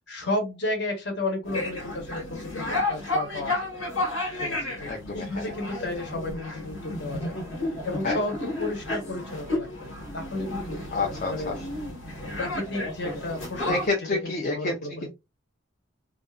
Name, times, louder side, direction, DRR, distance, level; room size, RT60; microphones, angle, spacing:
voice 1, 0.1-3.5 4.4-7.3 7.8-10.8 11.3-11.6 12.4-13.8 14.2-15.1, left 2 dB, 55° left, 3 dB, 1.0 m, -33 dB
sound 1, 1.4-13.9, left 2 dB, 80° left, 1.3 m, -32 dB
voice 2, 4.8-5.5 8.0-8.2 10.9-11.7 13.6-15.1, left 3 dB, 40° left, 0 dB, 0.4 m, -29 dB
2.5 x 2.4 x 2.2 m, 0.23 s
head